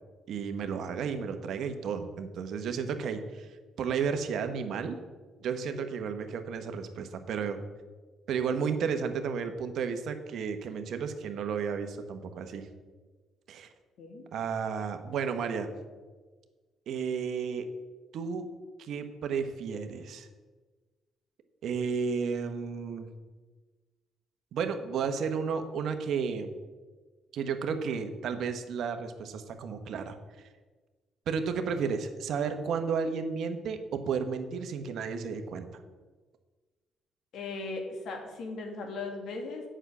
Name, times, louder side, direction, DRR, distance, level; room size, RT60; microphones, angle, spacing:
voice 1, 0.3-3.5 3.8-5.0 5.4-7.6 8.3-12.7 13.5-13.7 14.3-15.7 16.9-17.7 18.1-18.5 18.8-20.3 21.6-23.1 24.5-26.5 27.3-30.2 31.3-35.7, right 6 dB, 70° right, 8 dB, 1.1 m, -32 dB
voice 2, 37.3-39.6, left 3 dB, 70° left, 3 dB, 2.2 m, -38 dB
8.0 x 6.3 x 8.1 m, 1.3 s
cardioid pair, 85°, 0 cm